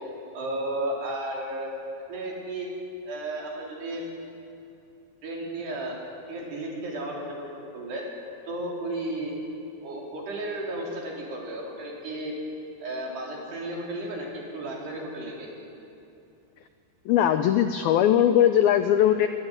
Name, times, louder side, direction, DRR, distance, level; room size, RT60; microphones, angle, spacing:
voice 1, 0.3-1.7 2.1-2.7 3.1-4.0 5.2-6.0 6.3-8.1 8.5-9.3 9.8-12.3 12.8-15.5, right 1 dB, 60° right, -2 dB, 6.5 m, -33 dB
voice 2, 17.1-19.3, left 10 dB, 85° left, 9 dB, 2.1 m, -20 dB
23.5 x 21.0 x 9.7 m, 2.7 s
omnidirectional pair, 5.3 m